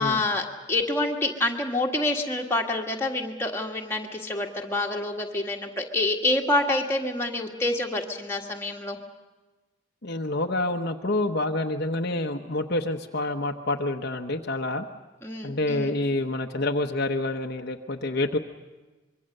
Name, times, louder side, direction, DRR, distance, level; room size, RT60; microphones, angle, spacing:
voice 1, 0.0-9.0 15.2-15.9, left 2 dB, 10° left, 0 dB, 1.7 m, -27 dB
voice 2, 10.0-14.9 15.4-18.4, left 2 dB, 50° left, 4 dB, 0.9 m, -27 dB
25.0 x 23.0 x 6.6 m, 1.2 s
head